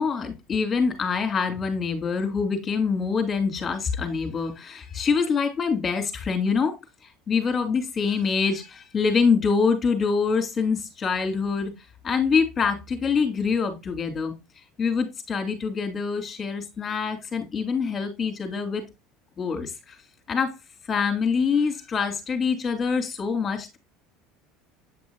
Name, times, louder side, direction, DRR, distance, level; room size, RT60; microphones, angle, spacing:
voice 1, 0.0-6.7 7.0-11.7 12.0-14.3 14.8-18.8 19.4-19.7 20.3-20.6 20.9-23.8, left 5 dB, 25° left, 5 dB, 2.7 m, -25 dB
8.8 x 6.0 x 2.3 m, 0.22 s
supercardioid pair, 125°, 0 cm